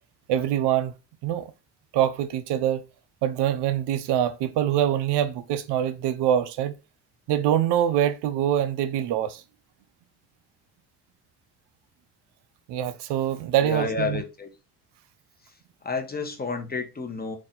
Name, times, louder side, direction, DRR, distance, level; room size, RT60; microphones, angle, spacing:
voice 1, 0.3-0.9 1.2-1.5 1.9-2.8 3.2-6.7 7.3-9.4 12.7-14.2, right 10 dB, 80° right, 0.6 m, -24 dB
voice 2, 13.6-14.5 15.4-17.4, left 4 dB, 25° left, 0.9 m, -31 dB
4.2 x 2.4 x 3.7 m
cardioid pair, 90°, 41 cm